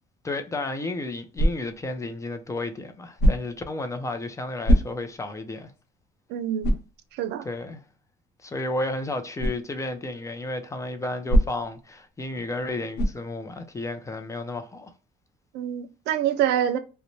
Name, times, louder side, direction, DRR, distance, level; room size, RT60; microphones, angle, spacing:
voice 1, 0.2-5.7 7.4-7.8 8.4-14.9, left 2 dB, 20° left, 0.5 m, -32 dB
sound 1, 1.3-1.9 3.2-3.7 4.6-5.3 5.8-5.9 6.6-7.0 9.4-9.6 11.3-11.8 12.9-13.3, equal, 75° left, 0.9 m, -22 dB
voice 2, 6.3-6.8 7.1-7.5 15.5-16.8, right 10 dB, 85° right, 0.4 m, -26 dB
2.6 x 2.1 x 2.9 m
cardioid pair, 110°, 17 cm